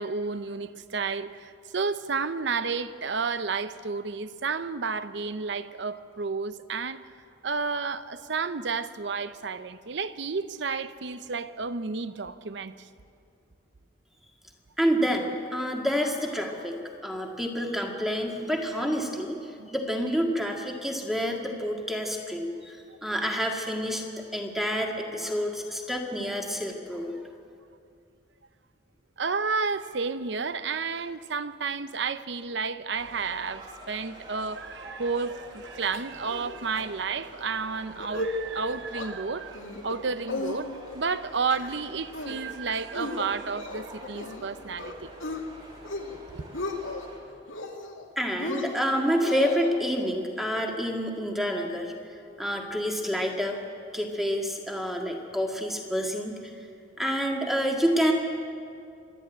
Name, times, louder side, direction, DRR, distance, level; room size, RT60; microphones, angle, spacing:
voice 1, 0.0-7.0 7.4-12.9 19.6-19.7 29.2-45.1 46.3-46.5, right 4 dB, 60° right, 0.7 m, -31 dB
voice 2, 14.8-16.8 17.0-19.4 19.7-27.1 48.2-51.9 52.4-53.6 53.9-56.4 57.0-58.1, equal, ahead, 1.8 m, -28 dB
sound 1, 32.9-47.2, right 1 dB, 25° right, 4.4 m, -47 dB
sound 2, 35.9-36.5 36.8-36.9 37.2-37.5 37.9-38.3 38.7-39.1 39.5-40.0 40.3-41.0 41.3-41.8 42.1-42.5 42.9-44.5 44.8-45.4 45.8-46.2 46.4-47.1 47.5-48.0 48.4-49.7, left 2 dB, 85° left, 2.2 m, -35 dB
26.0 x 11.5 x 9.1 m
head